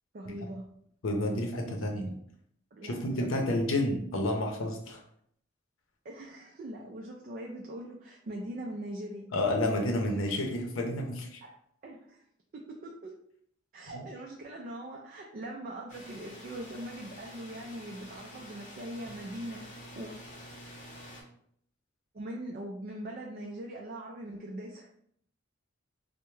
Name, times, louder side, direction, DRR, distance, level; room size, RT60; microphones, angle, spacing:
voice 1, 0.1-0.6 2.7-3.4 6.0-9.3 11.4-11.5 11.8-12.2 12.5-13.2 13.7-19.6 19.9-20.1 22.1-24.9, right 1 dB, 45° right, -1 dB, 0.4 m, -41 dB
voice 2, 1.0-2.1 2.8-5.0 9.3-11.4 13.9-14.0, left 1 dB, 75° left, 2 dB, 0.6 m, -30 dB
sound 1, 15.9-21.2, equal, 40° left, 0.7 m, -48 dB
3.3 x 2.1 x 3.1 m, 0.68 s
head